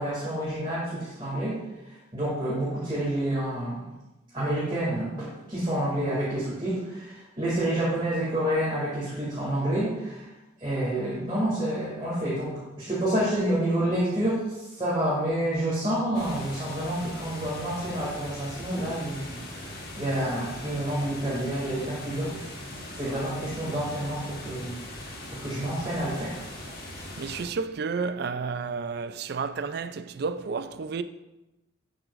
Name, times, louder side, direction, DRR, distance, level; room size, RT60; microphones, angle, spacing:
voice 1, 0.0-1.6 2.1-3.8 4.3-10.3 10.6-22.4 22.9-25.1 25.4-26.4, right 1 dB, 25° right, 2.3 m, -29 dB
sound 1, 16.1-27.5, left 1 dB, 50° left, 1.5 m, -40 dB
voice 2, 27.2-31.0, right 5 dB, 55° right, 0.4 m, -31 dB
8.8 x 7.9 x 2.5 m
head